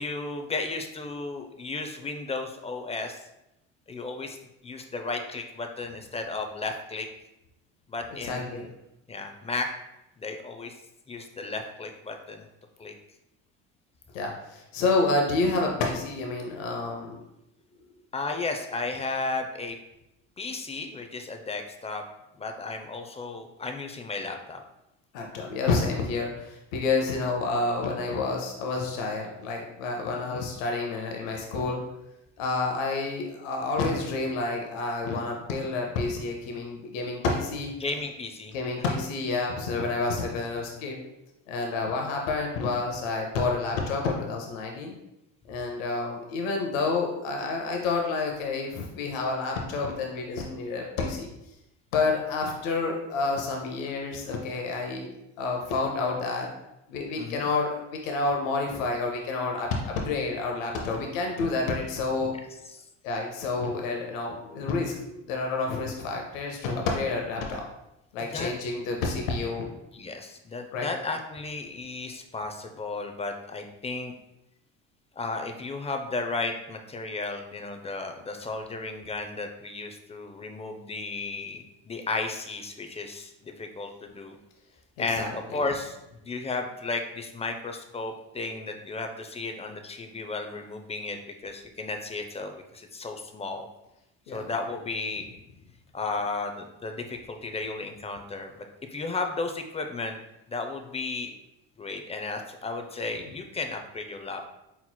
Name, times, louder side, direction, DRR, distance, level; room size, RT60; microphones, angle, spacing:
voice 1, 0.0-3.2 3.9-4.4 4.6-7.1 7.9-8.7 9.1-9.7 10.2-10.7 11.1-12.5 12.8-12.9 18.1-19.8 20.4-22.0 22.4-24.6 30.3-30.4 37.8-38.5 57.2-57.5 62.7-62.8 68.3-68.5 69.9-74.1 75.2-84.4 85.0-86.0 86.2-93.7 94.3-95.3 95.9-98.6 98.9-100.2 100.5-101.3 101.8-104.5, left 3 dB, 15° left, 4 dB, 0.5 m, -34 dB
voice 2, 8.2-8.7 14.1-17.2 25.1-31.8 32.4-37.7 38.5-41.0 41.5-44.9 45.5-51.3 51.9-55.1 55.4-56.5 56.9-62.3 63.0-67.6 68.1-69.7 70.7-70.9 85.2-85.6 94.3-94.5, left 3 dB, 85° left, 1 dB, 0.7 m, -29 dB
4.2 x 4.2 x 2.2 m, 0.89 s
hypercardioid pair, 75°, 38 cm